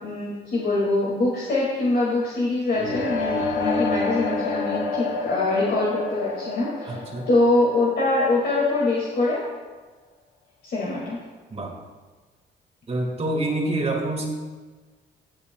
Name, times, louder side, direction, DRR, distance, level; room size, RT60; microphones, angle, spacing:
voice 1, 0.0-7.0 7.3-9.4 10.6-11.2, left 2 dB, 55° left, -6 dB, 2.2 m, -23 dB
sound 1, 2.7-8.7, left 4 dB, 85° left, 1.2 m, -28 dB
voice 2, 6.8-7.3 11.5-11.7 12.9-14.3, right 2 dB, 30° right, 1 dB, 1.7 m, -26 dB
18.5 x 6.9 x 2.3 m, 1.3 s
cardioid pair, 90°, 20 cm